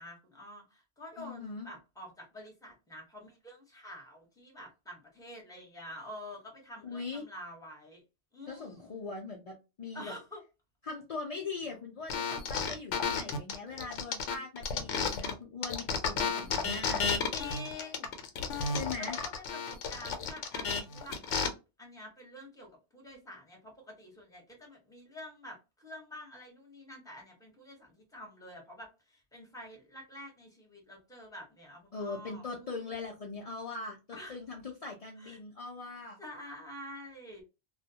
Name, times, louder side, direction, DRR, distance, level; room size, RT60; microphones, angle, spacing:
voice 1, 0.0-8.0 8.3-8.9 9.9-10.4 17.3-18.1 18.6-32.7 34.1-34.3 35.2-35.4 36.2-37.4, left 1 dB, 5° left, 0 dB, 0.7 m, -48 dB
voice 2, 1.2-1.7 6.8-7.2 8.5-10.1 10.8-17.1 18.7-19.2 31.9-36.2, left 4 dB, 60° left, -1 dB, 0.3 m, -41 dB
sound 1, 12.1-15.3 15.6-21.5, left 5 dB, 80° left, 0.9 m, -32 dB
2.4 x 2.2 x 2.7 m, 0.27 s
omnidirectional pair, 1.2 m